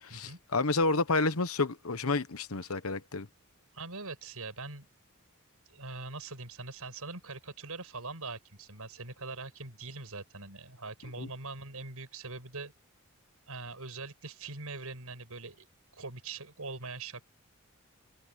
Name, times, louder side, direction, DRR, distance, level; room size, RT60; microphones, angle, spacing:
voice 1, 0.0-3.3 11.2-11.3, left 3 dB, 70° left, 1.2 m, -30 dB
voice 2, 3.7-4.9 5.7-12.7 13.5-15.7 15.9-17.2, right 3 dB, 90° right, 5.5 m, -42 dB
open air
head